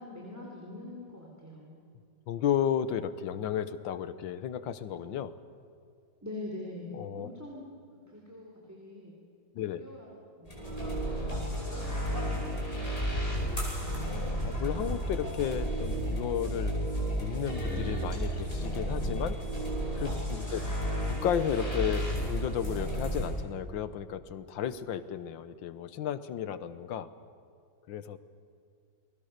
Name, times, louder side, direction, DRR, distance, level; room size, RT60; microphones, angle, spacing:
voice 1, 0.0-1.8 6.2-7.6 8.1-9.1 9.6-10.1 10.4-10.7 11.3-13.7 20.3-20.8, left 2 dB, 10° right, -2 dB, 3.2 m, -45 dB
voice 2, 2.3-5.3 6.9-7.3 9.6-9.8 13.8-16.8 17.2-19.4 20.0-20.6 21.2-27.1 27.9-28.2, left 9 dB, 85° left, 13 dB, 1.7 m, -33 dB
sound 1, 10.4-23.3, equal, 20° left, 6.1 m, -32 dB
29.0 x 21.0 x 6.6 m, 2.4 s
omnidirectional pair, 2.0 m